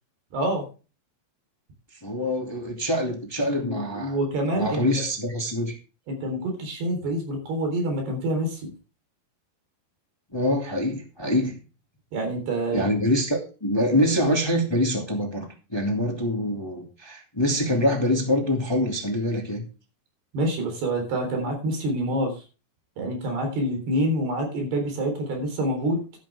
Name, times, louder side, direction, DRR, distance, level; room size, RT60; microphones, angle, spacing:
voice 1, 0.3-0.7 3.6-5.0 6.1-8.6 12.1-12.9 20.3-22.3 23.0-26.0, right 1 dB, 65° right, 4 dB, 5.7 m, -27 dB
voice 2, 2.0-4.2 4.5-5.8 10.3-11.6 12.7-19.7, left 1 dB, 45° left, 2 dB, 0.3 m, -25 dB
12.5 x 10.5 x 3.5 m, 0.33 s
omnidirectional pair, 5.0 m